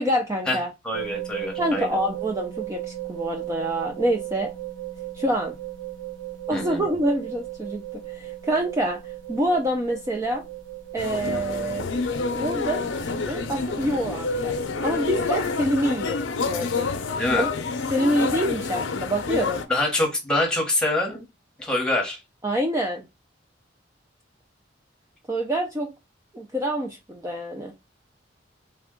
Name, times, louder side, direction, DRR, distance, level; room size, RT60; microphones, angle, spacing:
voice 1, 0.0-0.7 1.6-4.5 5.1-5.5 6.5-9.0 9.3-10.4 10.9-11.9 12.3-12.8 13.3-14.5 14.8-16.9 17.4-17.5 17.9-19.6 22.4-23.1 25.3-25.9 26.3-27.7, right 1 dB, 15° right, 0.4 m, -26 dB
voice 2, 0.8-2.0 6.5-6.8 17.2-17.5 19.7-21.2 21.6-22.2, left 2 dB, 5° left, 1.0 m, -25 dB
sound 1, 0.9-15.3, right 14 dB, 85° right, 0.8 m, -37 dB
sound 2, 11.0-19.7, left 4 dB, 80° left, 0.5 m, -28 dB
3.4 x 2.2 x 3.6 m
head